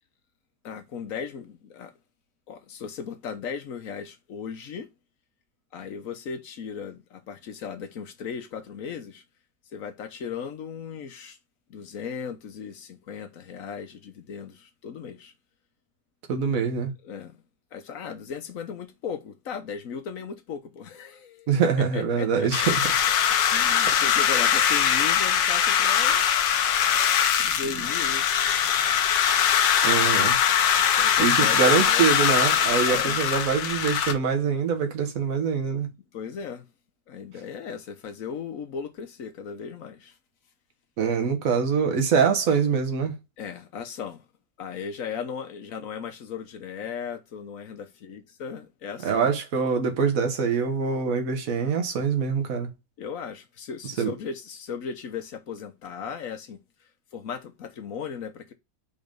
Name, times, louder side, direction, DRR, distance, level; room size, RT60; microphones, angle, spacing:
voice 1, 0.6-1.9 2.5-4.9 5.7-9.2 9.7-11.4 11.7-15.3 17.0-17.4 17.7-21.5 21.8-22.5 23.5-26.4 27.4-29.0 30.8-32.1 32.8-33.2 36.1-36.7 37.1-40.2 43.4-44.3 44.6-49.3 53.0-56.6 57.1-58.5, left 6 dB, 55° left, 1.2 m, -37 dB
voice 2, 16.3-16.9 21.5-22.8 29.8-30.4 31.2-35.9 41.0-43.2 49.0-52.7 54.0-54.1, right 6 dB, 50° right, 1.6 m, -24 dB
sound 1, 22.5-34.1, left 9 dB, 85° left, 1.5 m, -22 dB
5.5 x 3.5 x 5.1 m
omnidirectional pair, 1.9 m